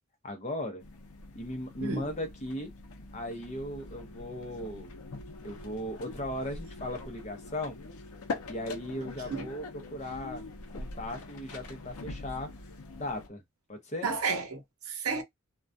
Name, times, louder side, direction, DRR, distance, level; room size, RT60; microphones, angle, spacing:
voice 1, 0.2-0.8 1.3-2.7 3.1-4.9 5.4-7.8 8.4-10.4 10.7-12.5 12.9-13.4 13.7-14.1, left 1 dB, 30° left, 0.6 m, -37 dB
sound 1, 0.8-13.3, left 3 dB, 85° left, 0.5 m, -43 dB
voice 2, 14.0-15.2, right 4 dB, 85° right, 0.7 m, -32 dB
2.3 x 2.2 x 2.5 m
head